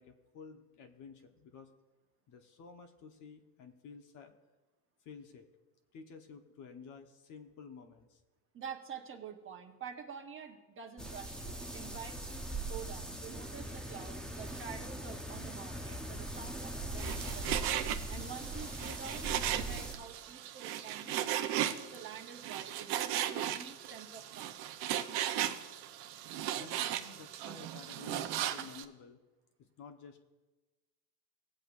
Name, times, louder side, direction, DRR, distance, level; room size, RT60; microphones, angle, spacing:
voice 1, 0.0-1.7 2.3-4.3 5.0-5.5 5.9-8.2 26.6-29.2 29.6-30.2, left 5 dB, 45° left, 5 dB, 1.1 m, -52 dB
voice 2, 8.5-17.8 18.1-24.6, right 7 dB, 30° right, 3 dB, 1.1 m, -48 dB
sound 1, 11.0-19.9, right 2 dB, ahead, 0.8 m, -41 dB
Frying (food), 17.0-28.8, right 12 dB, 60° right, 0.9 m, -37 dB
19.0 x 7.7 x 2.5 m, 1.2 s
supercardioid pair, 125°, 44 cm